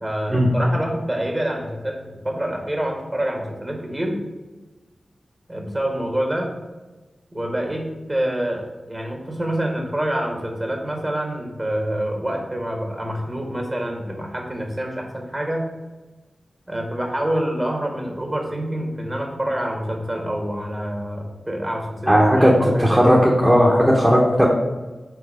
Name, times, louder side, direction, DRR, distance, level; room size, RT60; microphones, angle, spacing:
voice 1, 0.0-4.2 5.5-6.5 7.3-15.7 16.7-23.3, right 1 dB, 30° right, 1 dB, 1.9 m, -26 dB
voice 2, 22.1-22.5 22.8-24.5, equal, 10° right, -4 dB, 1.2 m, -15 dB
4.6 x 4.1 x 5.7 m, 1.2 s
cardioid pair, 45°, 0 cm